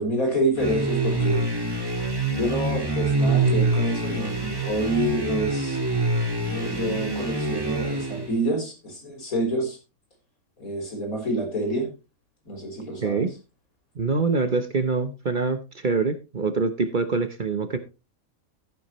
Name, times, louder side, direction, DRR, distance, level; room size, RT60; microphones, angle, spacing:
voice 1, 0.0-1.4 2.3-5.8 6.4-9.8 10.6-11.9 12.5-13.3, right 1 dB, 80° left, 4.3 m, -27 dB
sound 1, 0.6-8.4, right 2 dB, 15° right, 1.9 m, -25 dB
voice 2, 14.0-17.8, right 4 dB, 40° right, 0.9 m, -25 dB
14.5 x 8.4 x 3.0 m
omnidirectional pair, 1.5 m